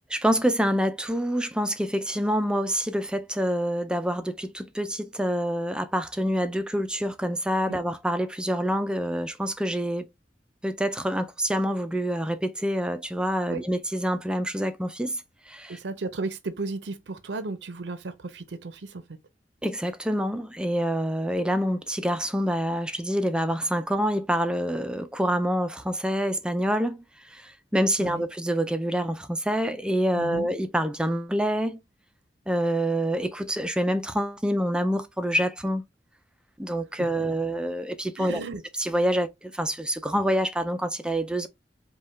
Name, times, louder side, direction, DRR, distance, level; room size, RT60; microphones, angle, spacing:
voice 1, 0.1-10.1 10.6-15.8 19.6-31.8 32.5-35.8 36.6-38.4 38.7-41.5, equal, 5° right, 0.3 m, -27 dB
voice 2, 15.7-19.0 28.0-28.2 30.2-30.5 38.2-38.6, right 3 dB, 75° right, 0.6 m, -34 dB
5.4 x 2.2 x 3.2 m
head